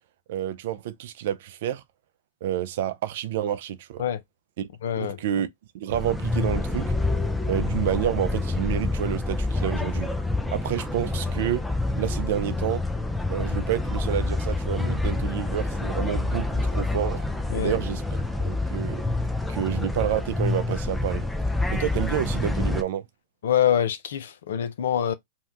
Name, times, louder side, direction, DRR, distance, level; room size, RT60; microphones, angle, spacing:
voice 1, 0.3-1.8 2.4-4.0 4.6-4.7 5.0-5.5 5.7-6.9 7.5-10.1 10.5-11.6 12.0-12.8 13.3-17.3 17.5-18.0 18.4-19.0 19.5-21.3 21.7-23.1, right 11 dB, 65° right, 0.4 m, -29 dB
voice 2, 4.8-5.2 17.5-17.7 23.4-25.1, left 9 dB, 75° left, 0.5 m, -25 dB
sound 1, 5.9-22.8, left 2 dB, 5° left, 0.4 m, -27 dB
2.8 x 2.2 x 3.4 m
hypercardioid pair, 120°, 0 cm